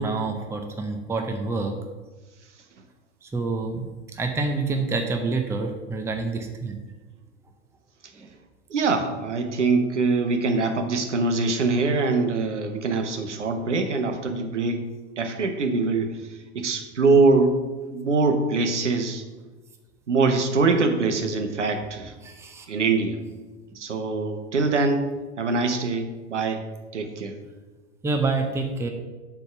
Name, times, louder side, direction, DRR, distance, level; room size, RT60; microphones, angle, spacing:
voice 1, 0.0-1.7 3.2-3.8 4.1-6.8 8.2-8.3 22.2-22.7 28.0-28.9, right 3 dB, 10° right, 4 dB, 0.6 m, -27 dB
voice 2, 8.7-14.8 15.2-16.2 16.5-17.6 17.9-19.2 20.1-22.1 22.7-23.2 23.7-25.1 25.4-26.6 26.9-27.4, right 3 dB, 85° right, 7 dB, 1.0 m, -23 dB
7.8 x 3.6 x 6.0 m, 1.2 s
hypercardioid pair, 95°, 35 cm